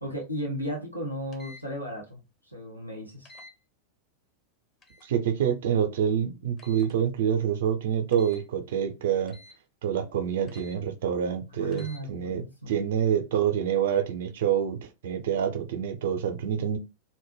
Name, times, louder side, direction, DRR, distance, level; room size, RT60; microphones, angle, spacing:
voice 1, 0.0-3.3 11.6-12.8, equal, 90° left, 0.6 m, -35 dB
sound 1, 1.3-1.6 3.3-3.5 4.8-5.1 6.6-6.9 8.1-8.4 9.3-9.6 10.5-10.8 11.7-12.0, left 2 dB, 25° left, 0.5 m, -50 dB
voice 2, 5.0-9.4 9.8-16.8, right 8 dB, 55° right, 0.4 m, -27 dB
2.1 x 2.0 x 3.1 m
figure-of-eight pair, 90°, 0 cm